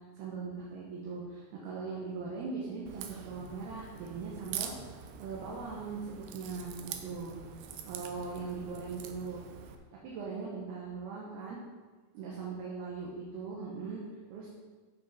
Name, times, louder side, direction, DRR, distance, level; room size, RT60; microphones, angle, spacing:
voice 1, 0.2-7.4 7.8-9.4 10.0-11.6 12.1-14.0 14.3-14.5, right 4 dB, 70° right, -4 dB, 2.8 m, -40 dB
Crack, 2.9-9.8, right 8 dB, 90° right, 2.2 m, -44 dB
9.3 x 5.2 x 5.6 m, 1.4 s
omnidirectional pair, 5.2 m